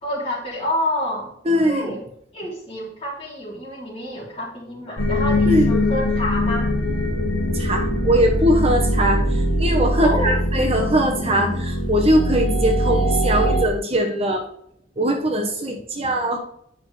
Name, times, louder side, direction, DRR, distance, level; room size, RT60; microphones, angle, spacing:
voice 1, 0.0-1.3 1.7-2.0 2.3-6.7 10.0-10.4, left 1 dB, 30° left, -5 dB, 3.7 m, -28 dB
voice 2, 1.4-1.9 5.5-5.8 7.5-14.5 15.0-16.4, equal, 35° right, 2 dB, 1.1 m, -21 dB
sound 1, 5.0-13.7, equal, 85° left, 1.5 m, -22 dB
9.8 x 5.9 x 3.4 m, 0.68 s
head